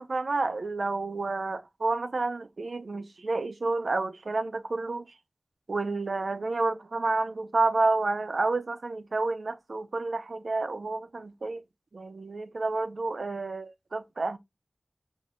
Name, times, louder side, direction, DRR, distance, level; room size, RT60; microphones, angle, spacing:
voice 1, 0.0-5.1 5.7-11.6 11.9-14.4, right 3 dB, 80° right, 0.5 m, -30 dB
5.3 x 2.6 x 3.6 m
wide cardioid pair, 50°, 0 cm